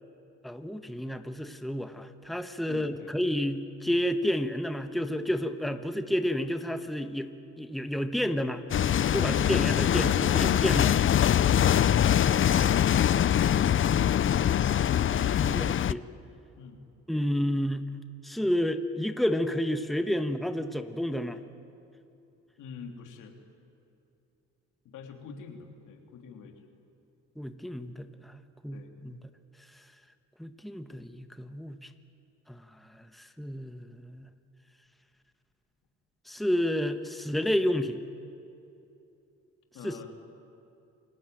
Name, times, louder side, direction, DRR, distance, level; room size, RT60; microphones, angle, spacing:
voice 1, 0.4-8.6 9.1-11.0 15.1-16.0 17.1-17.9 18.2-21.4 27.4-29.2 30.4-31.9 32.5-32.6 32.9-34.3 36.3-38.0 39.8-40.1, equal, ahead, 8 dB, 1.3 m, -30 dB
voice 2, 2.7-3.1 16.6-16.8 22.6-23.3 24.8-26.7 28.7-28.9 39.7-40.1, left 6 dB, 85° left, 4 dB, 3.1 m, -45 dB
sound 1, 8.7-15.9, left 10 dB, 40° left, 0.6 m, -23 dB
28.5 x 19.5 x 9.2 m, 2.7 s
cardioid pair, 90°, 30 cm